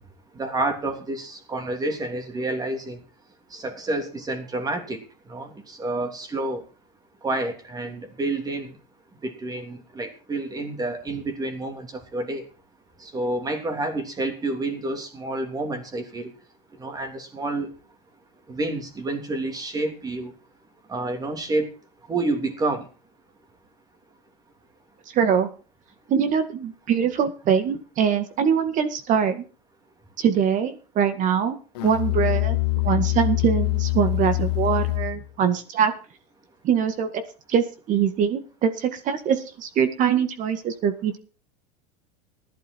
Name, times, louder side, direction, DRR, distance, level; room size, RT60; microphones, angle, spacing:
voice 1, 0.3-3.0 3.5-5.0 5.3-6.6 7.2-8.7 9.2-12.4 13.0-16.3 16.8-17.7 18.5-20.3 20.9-21.7 22.1-22.8, right 2 dB, 20° right, 6 dB, 3.1 m, -29 dB
voice 2, 25.1-25.5 26.1-29.4 30.2-31.6 31.8-32.6 32.8-35.9 36.6-37.2 37.5-41.2, right 7 dB, 40° right, 9 dB, 1.9 m, -23 dB
Musical instrument, 31.7-35.3, left 27 dB, 80° left, 0.8 m, -24 dB
16.0 x 11.5 x 4.5 m, 0.35 s
supercardioid pair, 130°, 20 cm